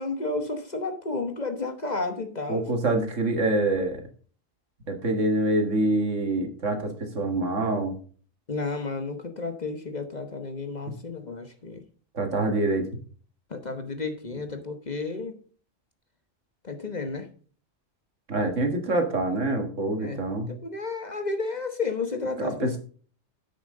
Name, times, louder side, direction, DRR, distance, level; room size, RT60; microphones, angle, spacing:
voice 1, 0.0-2.7 8.5-11.8 13.5-15.3 16.6-17.3 20.0-20.2 20.6-22.8, left 3 dB, 35° left, 6 dB, 1.2 m, -32 dB
voice 2, 2.5-4.0 4.9-8.0 12.1-12.9 18.3-20.5 22.4-22.8, right 2 dB, 75° right, 5 dB, 2.2 m, -25 dB
10.0 x 8.2 x 3.8 m, 0.42 s
omnidirectional pair, 1.3 m